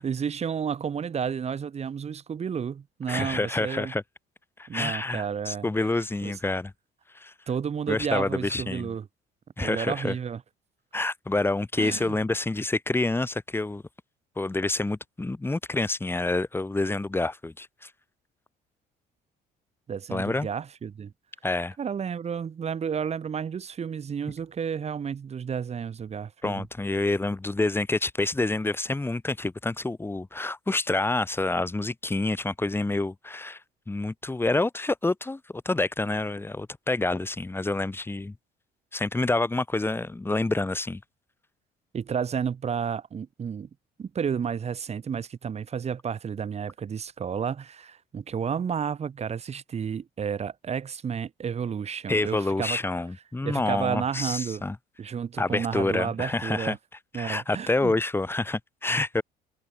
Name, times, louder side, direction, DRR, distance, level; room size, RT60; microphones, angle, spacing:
voice 1, 0.0-3.9 4.7-5.7 6.2-6.4 7.5-9.1 9.6-10.4 11.8-12.2 19.9-21.1 21.8-26.6 41.9-43.7 44.0-52.8 53.4-54.6 55.0-56.8 57.1-57.9, right 7 dB, 40° right, 4.4 m, -31 dB
voice 2, 3.1-4.0 4.6-6.7 7.1-7.3 7.9-8.9 9.6-10.2 10.9-13.8 14.4-17.9 20.1-20.5 21.4-21.8 26.4-33.6 33.9-38.4 38.9-41.0 52.1-54.8 55.4-56.8 57.1-59.2, left 2 dB, 15° left, 3.7 m, -28 dB
cardioid pair, 110°, 17 cm